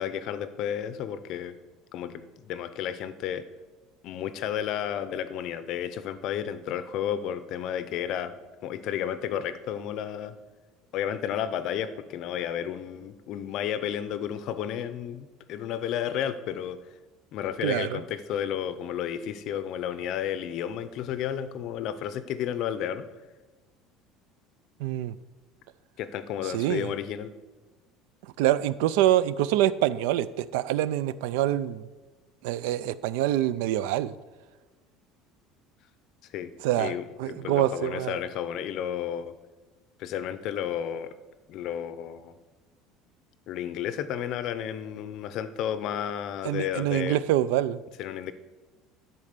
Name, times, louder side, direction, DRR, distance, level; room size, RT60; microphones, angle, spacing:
voice 1, 0.0-1.6 1.9-3.5 4.0-8.3 8.6-10.4 10.9-16.8 17.3-23.1 26.0-27.3 36.3-39.3 40.0-41.2 41.5-42.3 43.5-47.2 48.0-48.3, left 9 dB, 45° left, 13 dB, 0.5 m, -32 dB
voice 2, 17.6-18.0 24.8-25.1 26.4-26.9 28.4-31.8 32.4-34.1 36.6-36.9 37.2-38.2 46.4-47.8, right 13 dB, 80° right, 17 dB, 0.4 m, -25 dB
12.0 x 4.4 x 6.6 m, 1.3 s
cardioid pair, 180°, 0 cm